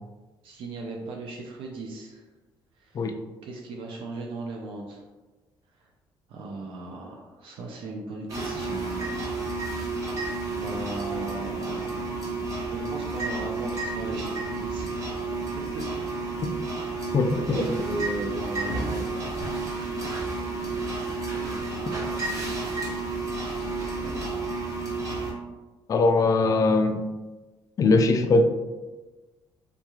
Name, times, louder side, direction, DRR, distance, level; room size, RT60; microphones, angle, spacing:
voice 1, 0.4-2.2 2.8-3.1 3.4-5.0 5.8-5.9 6.3-9.3 10.6-12.2 12.7-15.1 15.7-15.9 16.3-16.5 17.3-19.3, right 2 dB, 75° right, 0 dB, 0.5 m, -37 dB
sound 1, 8.3-25.3, right 3 dB, 40° right, 1.0 m, -31 dB
voice 2, 17.1-17.6 25.9-27.0 27.8-28.4, left 3 dB, 40° left, 5 dB, 0.4 m, -21 dB
3.7 x 3.0 x 2.3 m, 1.2 s
cardioid pair, 105°, 9 cm